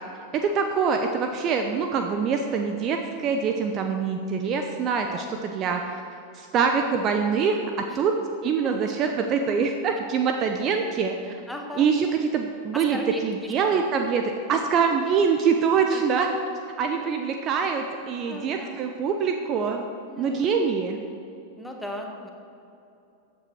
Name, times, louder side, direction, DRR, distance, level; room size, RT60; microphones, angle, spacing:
voice 1, 0.3-6.0 6.3-8.2 8.4-11.3 11.8-16.3 16.8-19.9 20.2-21.0, right 6 dB, 35° right, 5 dB, 0.8 m, -24 dB
voice 2, 4.9-5.4 7.9-8.0 8.6-8.7 11.5-11.9 12.7-13.8 15.9-16.0 16.3-16.4 18.3-18.8 20.0-20.5 21.6-22.3, left 1 dB, ahead, 1 dB, 1.6 m, -37 dB
14.5 x 8.5 x 4.7 m, 2.7 s
figure-of-eight pair, 90°, 0 cm